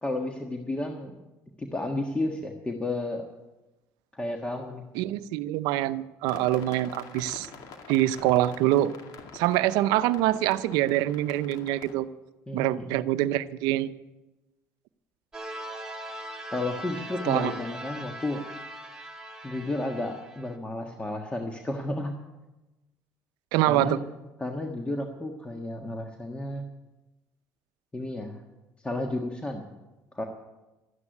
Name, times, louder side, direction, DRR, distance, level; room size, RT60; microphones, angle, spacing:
voice 1, 0.0-1.1 1.6-3.2 4.1-4.9 12.5-13.0 16.5-18.4 19.4-22.2 23.7-24.0 24.4-26.6 27.9-28.4 28.8-29.7 30.1-30.3, left 2 dB, 15° left, 3 dB, 1.5 m, -32 dB
voice 2, 5.0-7.5 7.9-8.9 9.3-12.1 12.5-13.9 17.2-17.5 23.5-24.0, right 14 dB, 85° right, 14 dB, 0.6 m, -25 dB
sound 1, 6.3-11.9, left 5 dB, 75° left, 2.3 m, -46 dB
sound 2, 15.3-20.5, right 1 dB, 10° right, 2.3 m, -40 dB
13.0 x 9.7 x 9.4 m, 1.1 s
supercardioid pair, 95°, 7 cm